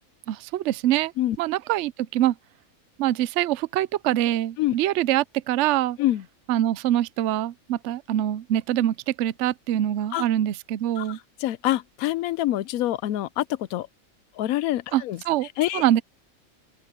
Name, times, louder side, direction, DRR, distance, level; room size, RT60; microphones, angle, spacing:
voice 1, 0.3-1.1 1.4-2.4 3.0-6.0 6.5-11.2 14.9-15.5 15.7-16.0, right 13 dB, 65° right, 0.8 m, -24 dB
voice 2, 11.0-13.9 14.3-15.2 15.6-15.8, left 14 dB, 85° left, 1.0 m, -26 dB
open air
omnidirectional pair, 1.5 m